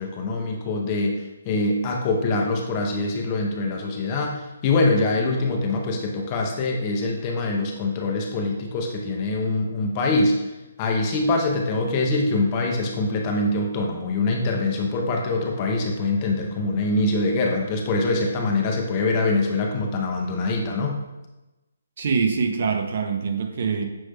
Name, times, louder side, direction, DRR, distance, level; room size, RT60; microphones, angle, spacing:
voice 1, 0.0-10.4 10.8-21.0, left 2 dB, 30° left, 1 dB, 0.6 m, -24 dB
voice 2, 22.0-23.9, right 5 dB, 55° right, 5 dB, 0.5 m, -24 dB
6.1 x 3.1 x 2.2 m, 1.0 s
hypercardioid pair, 155°, 0 cm